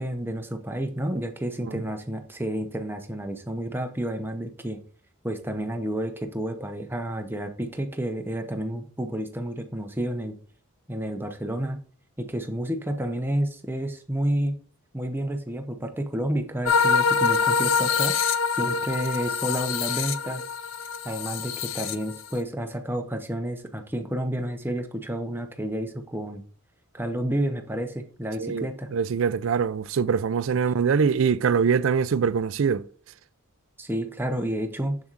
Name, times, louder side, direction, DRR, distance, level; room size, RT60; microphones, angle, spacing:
voice 1, 0.0-4.8 5.2-10.4 10.9-11.8 12.2-14.6 14.9-18.2 18.5-20.4 21.0-26.4 26.9-28.9 30.5-30.7 33.8-35.0, right 1 dB, 10° right, 0.8 m, -30 dB
sound 1, 16.6-22.4, left 6 dB, 60° left, 0.5 m, -25 dB
voice 2, 28.9-32.8, right 6 dB, 60° right, 0.4 m, -23 dB
7.4 x 6.9 x 2.5 m
head